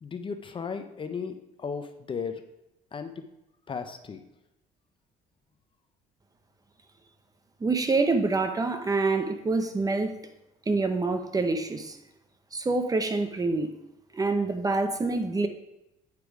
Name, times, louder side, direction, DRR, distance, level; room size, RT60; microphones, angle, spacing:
voice 1, 0.0-2.4 2.9-3.1 3.7-4.2, left 5 dB, 30° left, 8 dB, 0.6 m, -35 dB
voice 2, 7.6-10.1 10.7-12.0 12.5-13.7 14.1-15.5, right 3 dB, 20° right, 8 dB, 0.7 m, -26 dB
8.3 x 4.9 x 4.8 m, 0.89 s
cardioid pair, 110°, 17 cm